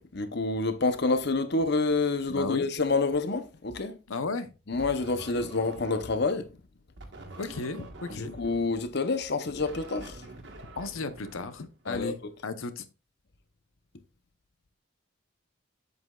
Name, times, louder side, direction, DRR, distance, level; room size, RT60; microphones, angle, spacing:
voice 1, 0.0-4.0 4.7-6.5 8.1-10.2 11.9-12.1, left 3 dB, 55° left, 0.8 m, -28 dB
voice 2, 2.3-2.7 4.1-4.6 7.4-8.3 10.7-12.2 12.4-12.9, left 3 dB, 85° left, 0.8 m, -34 dB
sound 1, 4.8-6.4 7.0-12.1, right 2 dB, 60° right, 1.5 m, -46 dB
7.8 x 7.8 x 2.4 m
head